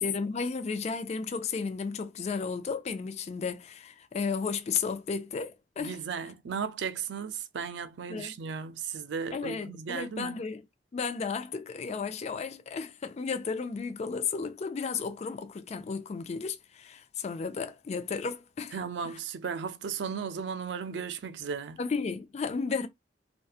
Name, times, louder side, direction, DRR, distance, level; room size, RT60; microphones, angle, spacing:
voice 1, 0.0-6.0 8.1-8.4 9.3-10.6 10.9-18.8 21.8-22.9, left 5 dB, 40° left, 0.3 m, -33 dB
voice 2, 5.8-10.4 18.7-21.8, right 6 dB, 90° right, 0.4 m, -35 dB
2.7 x 2.2 x 2.3 m
head